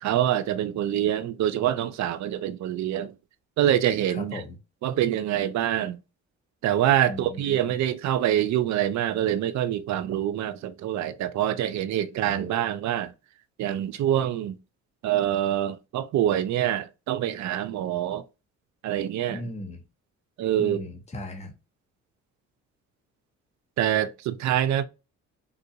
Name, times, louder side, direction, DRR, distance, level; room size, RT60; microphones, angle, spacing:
voice 1, 0.0-3.1 3.6-4.4 4.8-6.0 6.6-13.1 13.6-14.6 15.0-18.2 18.8-19.4 20.4-20.8 23.8-24.8, right 11 dB, 65° right, 0.5 m, -25 dB
voice 2, 4.1-4.5 7.1-7.7 12.2-12.5 19.3-19.8 20.6-21.5, left 1 dB, 20° left, 0.9 m, -37 dB
3.7 x 2.5 x 2.7 m
cardioid pair, 90°, 30 cm